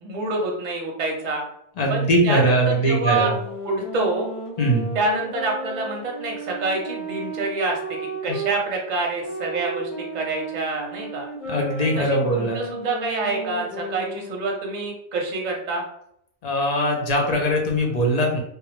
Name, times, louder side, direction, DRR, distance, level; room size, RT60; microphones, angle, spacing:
voice 1, 0.0-1.4 1.9-3.3 3.6-4.3 4.9-7.8 8.2-11.2 12.0-15.8, right 3 dB, 50° right, 0 dB, 0.7 m, -27 dB
voice 2, 1.8-3.3 4.6-4.9 8.3-8.4 11.5-12.6 16.4-18.4, equal, 50° left, 0 dB, 0.6 m, -21 dB
sound 1, 3.0-8.5 9.2-14.4, right 2 dB, 85° left, 1.1 m, -34 dB
2.2 x 2.0 x 3.0 m, 0.74 s
omnidirectional pair, 1.1 m